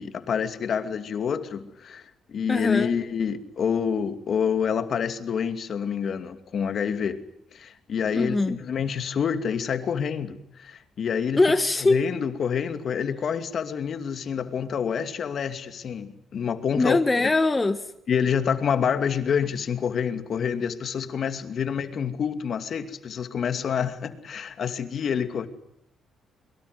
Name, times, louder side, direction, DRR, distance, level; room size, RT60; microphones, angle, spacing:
voice 1, 0.0-2.0 2.3-7.2 7.5-11.4 11.8-17.3 18.1-25.5, left 7 dB, 55° left, 2.5 m, -27 dB
voice 2, 2.5-2.9 8.1-8.6 11.4-12.0 16.8-17.8, left 2 dB, 20° left, 1.4 m, -22 dB
24.0 x 22.5 x 9.7 m
cardioid pair, 90°, 0 cm